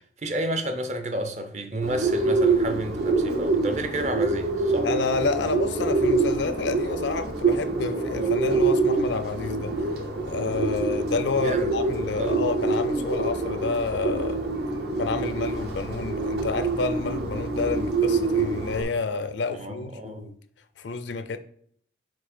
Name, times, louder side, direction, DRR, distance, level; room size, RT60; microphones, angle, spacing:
voice 1, 0.2-4.9 11.4-11.7 12.2-12.5 19.5-20.3, right 1 dB, 40° right, 0.7 m, -31 dB
Bird, 1.8-18.8, right 3 dB, 65° right, 1.0 m, -26 dB
voice 2, 4.8-9.7 10.3-14.5 15.0-20.4 20.8-21.4, left 4 dB, 85° left, 0.5 m, -29 dB
5.0 x 4.7 x 4.4 m
head